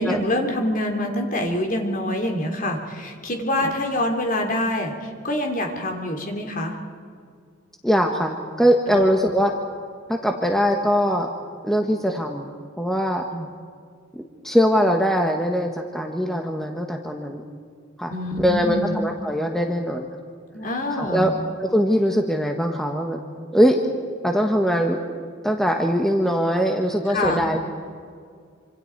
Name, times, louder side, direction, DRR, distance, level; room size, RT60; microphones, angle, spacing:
voice 1, 0.0-6.7 8.9-9.0 13.3-13.4 18.1-18.9 20.5-21.3 27.1-27.5, left 1 dB, 40° left, 3 dB, 3.1 m, -25 dB
voice 2, 7.8-9.5 10.1-11.3 11.6-12.5 12.8-13.2 14.1-17.4 18.0-18.1 18.4-20.1 21.0-21.3 21.6-23.2 23.5-23.8 24.2-25.0 25.4-27.6, equal, ahead, 2 dB, 1.3 m, -21 dB
26.5 x 26.0 x 4.6 m, 2.1 s
head